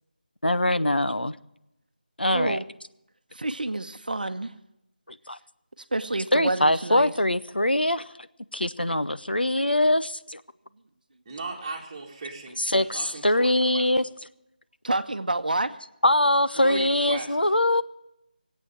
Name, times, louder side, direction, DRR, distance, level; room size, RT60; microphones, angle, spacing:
voice 1, 0.4-1.4 2.2-2.6 5.1-5.4 6.3-8.1 8.5-10.4 12.6-14.1 16.0-17.8, left 1 dB, 90° left, 13 dB, 0.8 m, -23 dB
voice 2, 2.3-2.6 3.3-4.5 5.9-7.1 14.8-15.8, right 2 dB, 60° right, 10 dB, 0.9 m, -28 dB
voice 3, 11.3-13.9 16.6-17.3, right 3 dB, 20° right, -1 dB, 2.3 m, -37 dB
18.0 x 8.5 x 9.0 m, 0.85 s
figure-of-eight pair, 165°, 5 cm